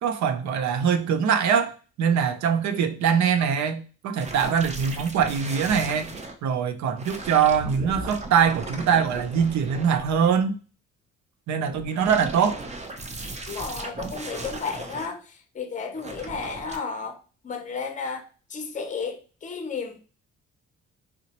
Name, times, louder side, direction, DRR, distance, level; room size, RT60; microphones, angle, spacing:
voice 1, 0.0-6.1 6.4-10.6 11.5-12.6, right 7 dB, 70° right, 0.6 m, -23 dB
sound 1, 4.2-6.3 7.0-10.4 11.7-15.1 16.0-16.8, right 2 dB, 25° right, 0.6 m, -37 dB
voice 2, 13.5-17.2 17.4-20.0, left 5 dB, 25° left, 0.6 m, -33 dB
3.8 x 2.2 x 2.8 m
cardioid pair, 90°, 30 cm